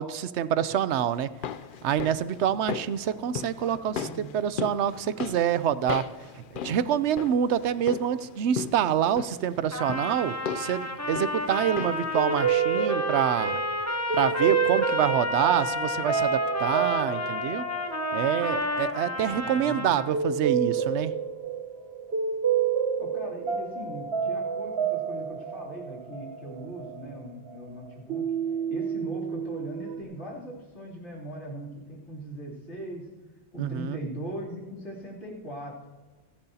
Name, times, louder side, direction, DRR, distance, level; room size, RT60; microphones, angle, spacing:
voice 1, 0.0-1.3 1.8-6.1 6.3-13.6 14.1-17.6 18.1-21.1 33.6-34.0, right 9 dB, 85° right, 15 dB, 0.9 m, -26 dB
sound 1, 1.2-12.2 12.4-12.5, left 8 dB, 60° left, 0.6 m, -38 dB
voice 2, 3.6-4.3 19.2-19.8 23.0-28.3 28.7-33.1 33.5-35.8, right 1 dB, 85° left, -4 dB, 3.4 m, -39 dB
Trumpet, 9.7-20.1, left 2 dB, 15° left, 1.0 m, -31 dB
sound 2, 12.1-27.8 28.1-30.0, right 7 dB, 65° right, 1.3 m, -29 dB
28.0 x 10.5 x 2.8 m, 1.3 s
omnidirectional pair, 1.1 m